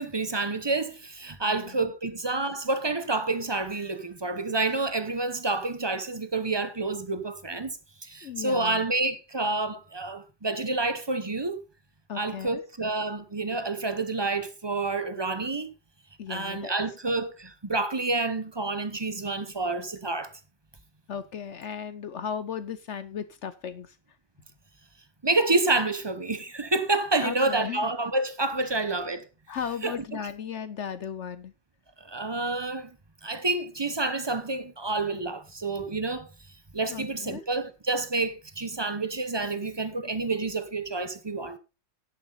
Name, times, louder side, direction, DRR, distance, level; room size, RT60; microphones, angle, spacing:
voice 1, 0.0-11.6 12.1-15.7 16.3-20.3 25.2-29.3 29.8-29.9 32.0-32.9 33.2-36.3 36.7-41.6, right 3 dB, 25° right, 0.6 m, -28 dB
voice 2, 1.4-1.8 8.2-8.9 12.1-12.6 16.2-16.7 21.1-24.0 27.2-27.9 29.5-31.5 36.9-37.4, left 7 dB, 60° left, 0.8 m, -36 dB
10.5 x 9.9 x 3.9 m
omnidirectional pair, 1.9 m